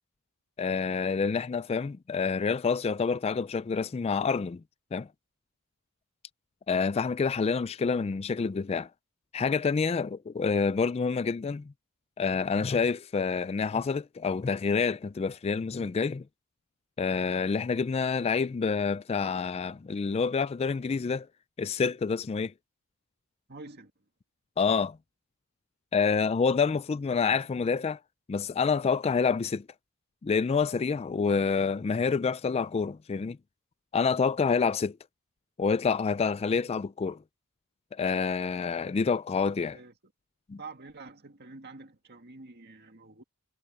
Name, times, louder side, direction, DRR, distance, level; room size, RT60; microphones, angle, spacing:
voice 1, 0.6-4.6 4.9-5.1 6.7-8.9 9.3-11.7 12.2-16.2 17.0-21.3 21.6-22.5 24.6-25.0 25.9-28.0 28.3-29.7 30.2-33.4 33.9-35.0 35.6-37.2 37.9-39.8 40.5-40.6, left 5 dB, 30° left, 0.3 m, -27 dB
voice 2, 23.5-23.9 39.7-39.9 40.6-43.2, right 3 dB, 50° right, 2.1 m, -47 dB
head